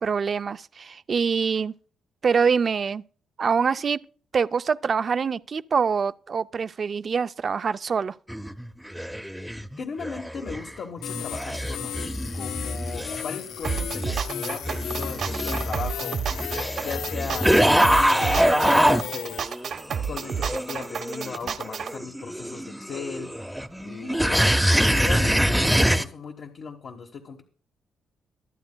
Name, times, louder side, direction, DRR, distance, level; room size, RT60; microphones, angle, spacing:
voice 1, 0.0-1.7 2.2-3.0 3.4-4.0 4.3-8.2, right 6 dB, 40° right, 0.4 m, -24 dB
sound 1, 8.3-10.7 11.0-19.0 19.4-26.0, equal, ahead, 0.7 m, -25 dB
voice 2, 9.8-23.3 23.8-24.6 24.9-27.4, left 5 dB, 55° left, 1.3 m, -37 dB
sound 2, 11.0-19.4, left 10 dB, 85° left, 0.4 m, -35 dB
sound 3, 13.6-21.9, right 7 dB, 60° right, 1.0 m, -31 dB
23.5 x 8.7 x 2.3 m
cardioid pair, 125°, 0 cm